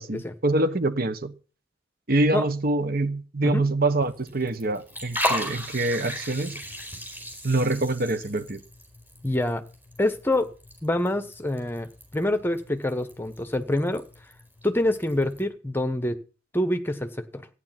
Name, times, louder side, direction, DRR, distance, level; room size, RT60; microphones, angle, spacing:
voice 1, 0.0-1.3 2.1-6.6 7.4-8.6, right 2 dB, 50° right, 1.2 m, -25 dB
Liquid, 4.0-15.4, equal, 10° right, 4.5 m, -37 dB
voice 2, 9.2-9.6 10.0-10.5 10.8-14.0 14.6-16.2 16.5-17.5, left 1 dB, 10° left, 1.1 m, -26 dB
14.5 x 9.9 x 6.0 m
head